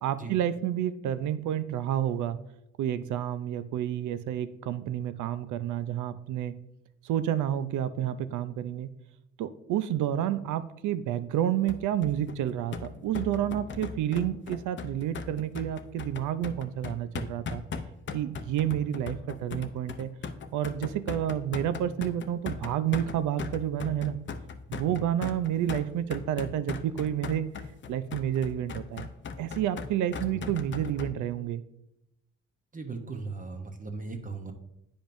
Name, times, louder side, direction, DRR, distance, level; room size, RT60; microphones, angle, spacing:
voice 1, 0.0-2.4 2.8-6.5 7.0-8.9 9.4-17.6 18.1-20.1 20.5-24.2 24.7-27.5 27.9-29.1 29.4-31.6, right 11 dB, 80° right, 13 dB, 0.5 m, -30 dB
sound 1, 11.7-31.1, left 5 dB, 40° left, 0.6 m, -38 dB
voice 2, 32.7-34.5, right 4 dB, 25° right, 4 dB, 0.9 m, -38 dB
8.9 x 5.1 x 2.6 m, 0.84 s
cardioid pair, 90°, 30 cm